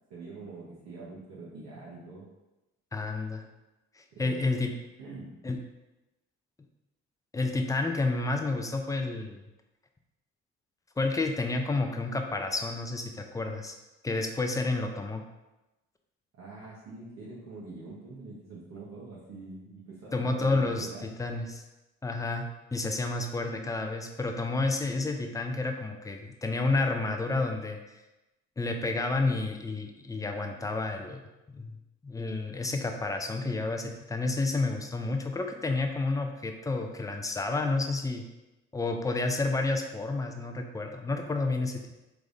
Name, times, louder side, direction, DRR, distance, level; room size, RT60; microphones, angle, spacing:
voice 1, 0.1-2.3 4.1-4.7 5.0-5.4 16.3-21.0, right 3 dB, 60° right, -7 dB, 1.1 m, -44 dB
voice 2, 2.9-3.4 4.0-4.7 5.4-5.6 7.3-9.4 11.0-13.7 14.0-15.2 20.1-20.9 21.2-21.6 22.0-27.8 28.6-31.2 31.5-31.8 32.0-38.2 38.7-42.0, left 3 dB, 10° left, 4 dB, 0.5 m, -30 dB
3.4 x 3.3 x 2.6 m, 1.0 s
hypercardioid pair, 55°, 29 cm